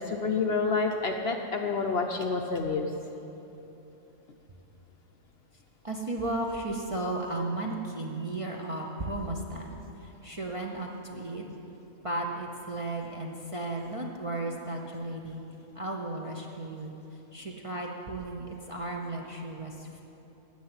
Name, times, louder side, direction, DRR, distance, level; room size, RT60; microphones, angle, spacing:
voice 1, 0.0-2.9, left 4 dB, 55° left, 3 dB, 0.8 m, -28 dB
voice 2, 5.8-9.7 10.0-11.4 12.0-15.4 15.7-16.9 17.3-20.0, right 2 dB, 30° right, -1 dB, 0.7 m, -34 dB
9.6 x 7.9 x 9.5 m, 3.0 s
omnidirectional pair, 1.5 m